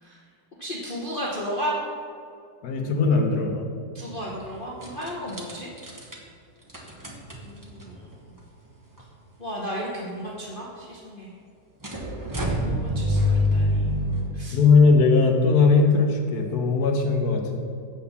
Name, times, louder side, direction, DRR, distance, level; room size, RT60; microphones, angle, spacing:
voice 1, 0.6-1.8 3.9-5.7 7.4-8.2 9.4-11.3 12.3-13.9 14.3-14.6, equal, 35° left, -5 dB, 1.0 m, -34 dB
voice 2, 2.6-3.6 14.5-17.6, left 4 dB, 65° left, 3 dB, 1.3 m, -19 dB
sound 1, 4.0-4.4 4.8-6.1 6.7-7.9 8.7-8.8 8.9-9.0 11.8-14.3, left 1 dB, 20° right, 0.6 m, -26 dB
7.6 x 4.7 x 7.0 m, 2.3 s
omnidirectional pair, 2.0 m